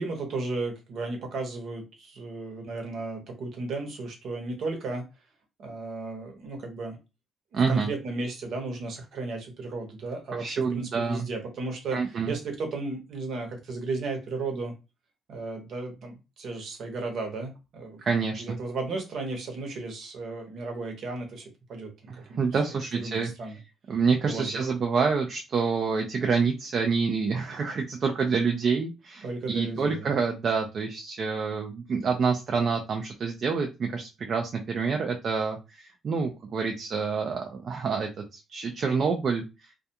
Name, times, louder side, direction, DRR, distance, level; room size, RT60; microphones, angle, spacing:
voice 1, 0.0-5.1 5.6-7.0 7.5-14.7 15.3-18.0 18.4-22.4 22.7-23.6 24.2-24.7 29.2-30.1, right 3 dB, 70° right, 3 dB, 0.9 m, -34 dB
voice 2, 7.5-7.9 10.4-11.3 11.9-12.3 18.0-18.6 22.1-23.3 23.9-39.4, right 5 dB, 55° right, 2 dB, 0.4 m, -27 dB
2.3 x 2.3 x 2.7 m, 0.26 s
cardioid pair, 90°, 0 cm